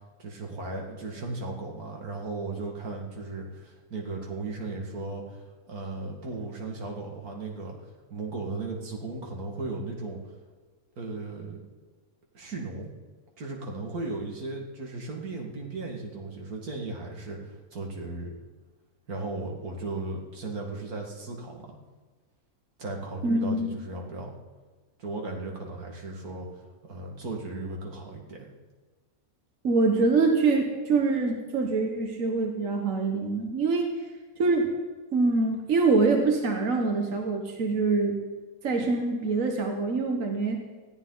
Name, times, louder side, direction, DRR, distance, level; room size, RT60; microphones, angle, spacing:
voice 1, 0.2-5.4 5.7-7.7 8.1-10.2 11.0-11.6 12.3-12.9 13.4-18.3 19.1-21.7 22.8-24.3 25.0-26.5 26.8-28.5, right 3 dB, 90° right, 0 dB, 2.6 m, -36 dB
voice 2, 23.2-23.7 29.6-34.0 34.4-34.7 35.1-38.2 38.6-40.6, right 3 dB, 65° right, 2 dB, 1.8 m, -24 dB
19.5 x 14.5 x 4.0 m, 1.4 s
omnidirectional pair, 1.5 m